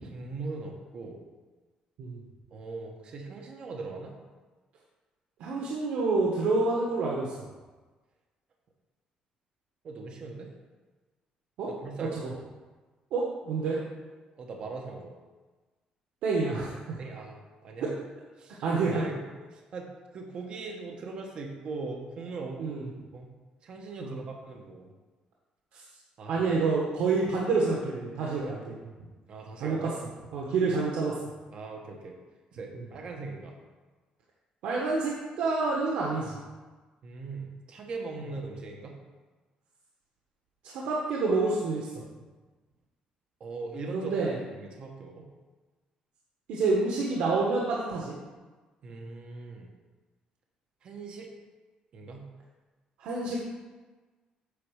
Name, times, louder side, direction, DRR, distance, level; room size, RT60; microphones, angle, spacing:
voice 1, 0.0-1.2 2.5-4.1 9.8-10.5 11.7-12.2 14.3-15.2 17.0-17.9 18.4-18.6 18.9-19.2 19.5-22.6 23.1-23.3 23.6-24.9 26.2-26.5 29.3-30.0 31.5-32.2 32.5-33.6 37.0-39.0 43.4-44.2 44.4-45.3 48.8-49.7 50.8-51.3 51.9-52.3, right 3 dB, 45° right, 1 dB, 1.2 m, -40 dB
voice 2, 5.4-7.3 11.6-11.7 12.2-12.3 13.1-13.8 16.2-17.0 18.6-19.0 22.6-22.9 24.0-24.2 25.7-25.8 26.3-28.8 29.6-29.9 30.3-31.2 34.6-36.4 40.7-41.9 43.9-44.4 46.5-48.2 53.0-53.4, right 3 dB, 80° right, -4 dB, 1.4 m, -28 dB
8.5 x 4.7 x 6.4 m, 1.3 s
cardioid pair, 165°, 2 cm